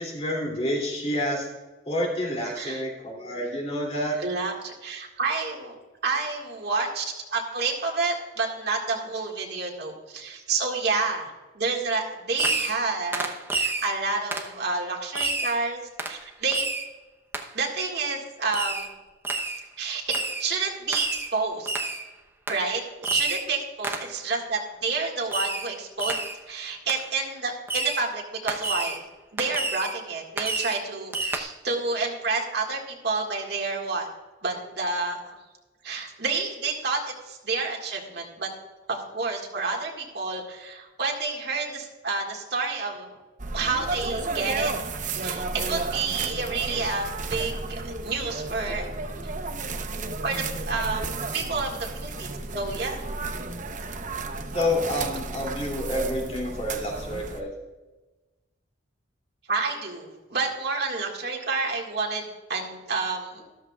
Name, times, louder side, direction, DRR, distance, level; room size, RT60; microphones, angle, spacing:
voice 1, 0.0-1.5 1.9-4.2 54.5-57.5, left 1 dB, 35° left, -1 dB, 2.8 m, -28 dB
voice 2, 4.2-5.8 6.0-11.3 11.6-16.7 17.5-18.9 19.8-21.7 22.5-26.1 26.5-29.0 29.3-34.1 34.4-35.2 35.8-37.0 37.3-38.5 38.9-43.1 43.5-44.7 45.1-48.9 50.2-53.0 59.5-63.5, right 4 dB, 60° right, 0 dB, 1.9 m, -29 dB
Fireworks, 12.4-12.9 13.1-13.9 14.3-14.5 15.1-15.6 16.0-16.2 16.5-16.9 17.3-17.5 18.5-18.9 19.2-19.6 20.1-20.4 20.9-21.3 21.7-22.0 22.5-22.6 23.0-23.5 23.8-24.1 25.3-25.7 26.0-26.4 26.9-27.0 27.7-28.0 28.5-29.0 29.4-30.0 30.4-30.8 31.1-31.4, right 2 dB, 10° right, 0.8 m, -29 dB
sound 1, 43.4-57.4, right 3 dB, 45° right, 0.8 m, -33 dB
13.5 x 13.0 x 2.4 m, 1.1 s
head